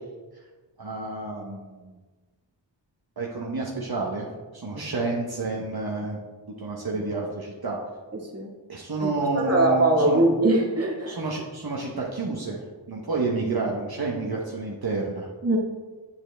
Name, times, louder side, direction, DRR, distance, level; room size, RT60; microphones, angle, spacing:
voice 1, 0.8-2.0 3.2-4.3 4.5-6.2 6.6-7.8 8.7-10.2 11.1-15.3, right 3 dB, 55° right, -3 dB, 1.1 m, -30 dB
voice 2, 9.4-11.2 15.4-15.6, right 2 dB, 35° right, -1 dB, 1.6 m, -21 dB
7.5 x 7.0 x 3.4 m, 1.3 s
wide cardioid pair, 45°, 45 cm